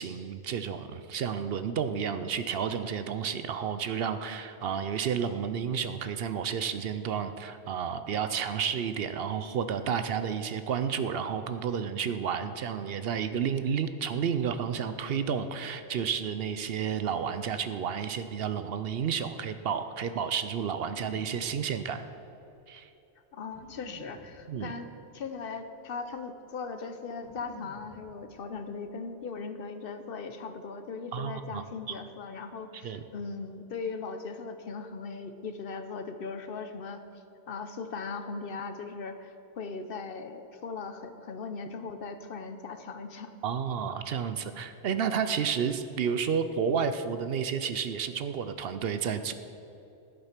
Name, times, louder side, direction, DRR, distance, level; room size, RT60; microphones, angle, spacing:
voice 1, 0.0-22.0 22.7-22.9 24.5-24.7 31.1-31.6 31.9-32.0 32.8-33.0 43.4-49.3, right 7 dB, 65° right, 10 dB, 0.7 m, -31 dB
sound 1, 20.8-21.5 22.4-22.5 23.5-24.3 25.1-25.2 25.6-26.1 27.2-28.0 28.3-28.8, equal, 25° left, 2.3 m, -50 dB
voice 2, 23.3-24.9 25.1-37.0 37.5-43.3, left 4 dB, 60° left, 9 dB, 0.8 m, -39 dB
11.5 x 7.9 x 5.8 m, 2.9 s
omnidirectional pair, 1.2 m